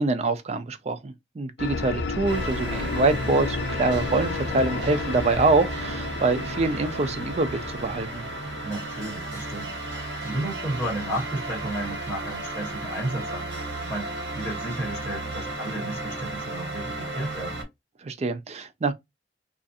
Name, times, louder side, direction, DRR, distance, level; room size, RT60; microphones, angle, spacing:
voice 1, 0.0-8.3 18.0-18.9, right 3 dB, 35° right, 0.4 m, -25 dB
sound 1, 1.6-10.4, left 4 dB, 75° left, 0.4 m, -33 dB
sound 2, 2.3-17.6, right 2 dB, 75° right, 1.3 m, -34 dB
voice 2, 2.6-2.9 8.6-13.5 13.9-17.6, right 1 dB, 15° left, 1.3 m, -33 dB
2.5 x 2.4 x 2.5 m
head